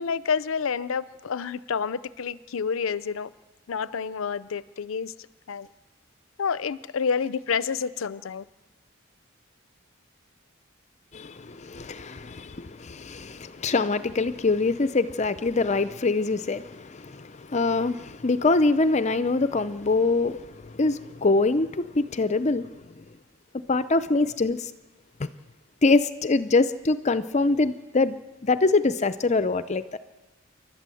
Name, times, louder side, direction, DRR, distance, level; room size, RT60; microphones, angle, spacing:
voice 1, 0.0-3.3 3.7-5.1 5.5-5.7 6.4-8.4, left 6 dB, 80° left, 17 dB, 0.5 m, -29 dB
voice 2, 11.1-22.7 23.0-23.1 23.7-24.7 25.2-25.3 25.8-28.2 28.4-30.0, left 3 dB, 35° left, 13 dB, 0.5 m, -24 dB
28.0 x 12.0 x 7.7 m, 1.2 s
head